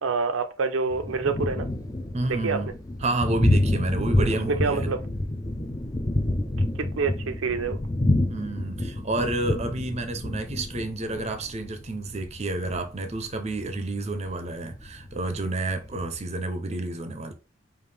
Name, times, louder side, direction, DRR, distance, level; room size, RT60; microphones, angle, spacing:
voice 1, 0.0-1.7 2.4-2.6 4.6-5.0 6.7-7.8, right 4 dB, 90° right, 0.6 m, -27 dB
Thunder, 0.9-16.2, left 1 dB, 20° left, 0.4 m, -28 dB
voice 2, 2.1-2.7 3.0-4.9 8.3-17.3, right 2 dB, 35° right, 0.6 m, -30 dB
5.0 x 2.5 x 3.3 m
head